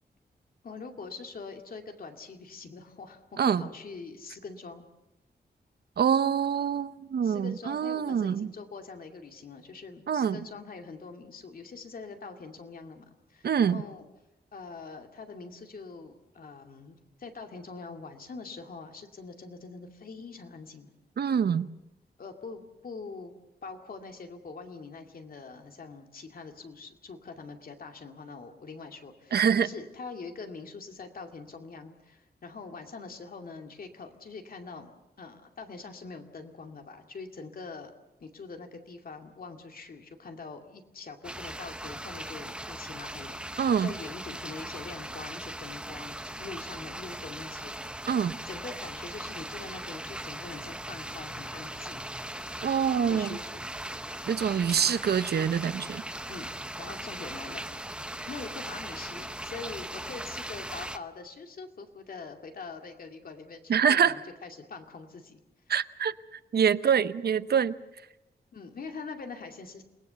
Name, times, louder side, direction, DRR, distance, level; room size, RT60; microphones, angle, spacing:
voice 1, 0.6-4.9 7.2-14.1 14.5-20.9 22.2-23.3 23.6-34.9 35.2-37.9 38.2-48.0 48.4-52.1 53.1-53.7 56.3-56.5 56.8-57.6 58.3-65.4 66.8-66.9 68.5-69.8, left 4 dB, 60° left, 5 dB, 2.4 m, -43 dB
voice 2, 6.0-8.5 10.1-10.4 13.4-13.8 21.2-21.7 29.3-29.7 43.6-43.9 48.1-48.4 52.6-53.4 54.3-56.0 63.7-64.1 65.7-67.7, right 7 dB, 70° right, 14 dB, 0.8 m, -25 dB
sound 1, 41.2-61.0, right 1 dB, 5° right, 0.8 m, -39 dB
28.5 x 20.0 x 7.0 m, 0.94 s
wide cardioid pair, 155°, 17 cm